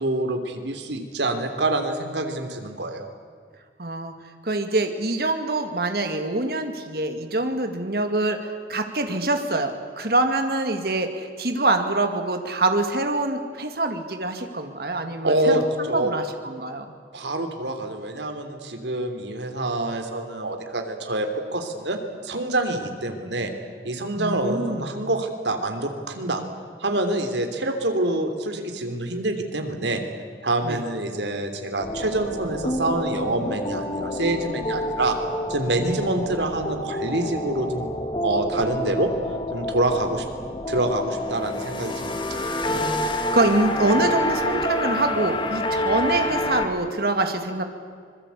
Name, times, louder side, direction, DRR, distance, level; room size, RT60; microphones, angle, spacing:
voice 1, 0.0-3.0 15.2-16.1 17.1-23.5 23.8-26.4 26.8-30.0 30.4-35.2 35.5-38.0 38.2-39.1 39.5-40.3 40.7-42.4, right 2 dB, 85° right, 6 dB, 3.2 m, -26 dB
voice 2, 3.8-4.1 4.4-15.3 15.8-16.9 24.2-24.9 30.6-30.8 35.9-36.0 42.7-47.6, right 2 dB, 60° right, 6 dB, 2.2 m, -25 dB
sound 1, 31.8-46.7, left 1 dB, 25° left, 1.7 m, -28 dB
25.5 x 21.5 x 8.4 m, 2.1 s
head